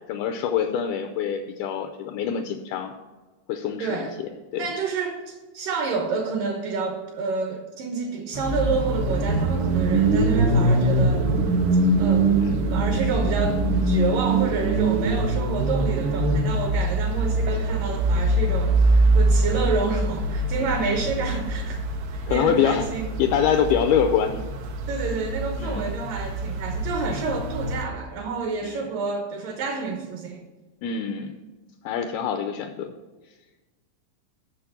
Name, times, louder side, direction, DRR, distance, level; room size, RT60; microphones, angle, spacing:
voice 1, 0.1-2.9 3.5-4.7 12.4-12.5 19.5-19.7 20.6-20.8 22.3-22.9 23.2-24.4 25.6-25.9 28.6-28.9 30.8-31.4 31.8-32.9, left 8 dB, 80° left, 5 dB, 2.3 m, -25 dB
voice 2, 3.8-4.1 4.6-11.3 12.0-12.3 12.7-21.8 22.1-23.1 23.5-23.6 24.9-30.5, right 4 dB, 70° right, 3 dB, 2.3 m, -29 dB
sound 1, 8.3-27.8, right 2 dB, 85° right, 3.4 m, -23 dB
8.2 x 6.4 x 7.9 m, 1.2 s
omnidirectional pair, 4.8 m